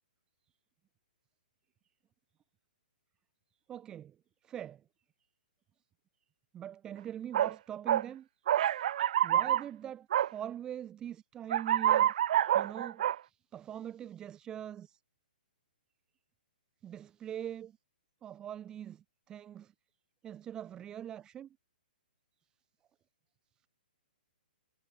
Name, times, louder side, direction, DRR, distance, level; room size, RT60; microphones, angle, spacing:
voice 1, 3.7-4.2 4.4-4.8 6.5-8.3 9.2-12.1 12.5-15.0 16.8-17.8 18.2-19.7 20.2-21.6, right 10 dB, 15° right, 1.2 m, -43 dB
sound 1, 7.3-7.5 7.9-8.0 8.5-9.6 10.1-10.3 11.5-13.1, right 11 dB, 50° right, 1.6 m, -27 dB
hypercardioid pair, 160°, 5 cm